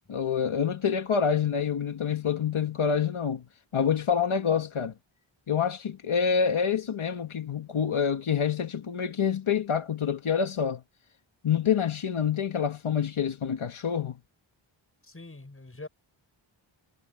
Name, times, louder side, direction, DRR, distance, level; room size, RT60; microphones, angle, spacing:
voice 1, 0.1-3.5 3.7-4.9 5.5-10.8 11.4-14.2, left 7 dB, 85° left, 1.9 m, -27 dB
voice 2, 15.0-15.9, left 2 dB, 25° left, 7.0 m, -44 dB
wide cardioid pair, 100°, 48 cm